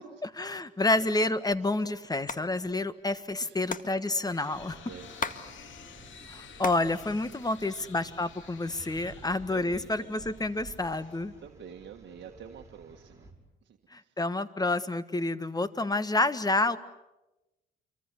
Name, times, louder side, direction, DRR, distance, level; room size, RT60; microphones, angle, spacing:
voice 1, 0.2-4.8 6.3-11.3 13.9-16.8, left 2 dB, 20° left, 13 dB, 1.5 m, -29 dB
Hands, 2.3-2.4 2.7-2.8 3.0-5.4 5.7-6.9 7.2-8.0 8.6-9.2, left 5 dB, 40° left, 1.9 m, -37 dB
voice 2, 3.4-3.7 4.8-6.1 7.4-7.8 9.1-10.3 11.4-13.3 13.6-14.1, right 8 dB, 60° right, 4 dB, 1.7 m, -49 dB
sound 1, 3.9-11.8, left 7 dB, 75° left, 2.7 m, -52 dB
sound 2, 4.5-13.3, right 2 dB, 15° right, 5.8 m, -53 dB
27.5 x 23.5 x 8.3 m, 1.0 s
cardioid pair, 90°, 20 cm